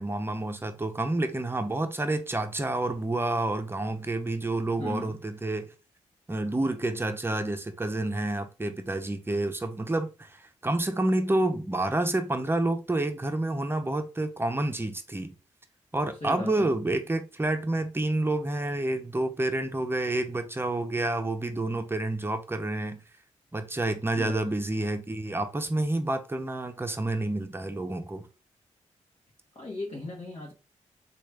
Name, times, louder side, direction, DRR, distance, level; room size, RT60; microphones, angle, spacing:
voice 1, 0.0-5.7 6.3-15.3 15.9-23.0 23.5-28.3, right 2 dB, 15° right, 0.6 m, -29 dB
voice 2, 4.8-5.2 16.2-16.7 24.2-24.6 29.5-30.5, left 2 dB, 50° left, 1.0 m, -37 dB
3.1 x 2.3 x 3.3 m
cardioid pair, 50°, 13 cm